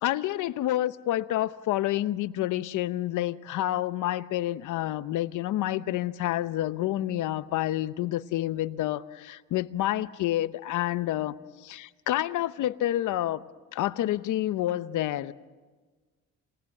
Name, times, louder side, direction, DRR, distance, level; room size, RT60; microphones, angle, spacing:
voice 1, 0.0-11.4 11.6-13.4 13.7-15.3, left 14 dB, 80° left, 0.8 m, -28 dB
28.5 x 20.0 x 7.8 m
cardioid pair, 90°, 30 cm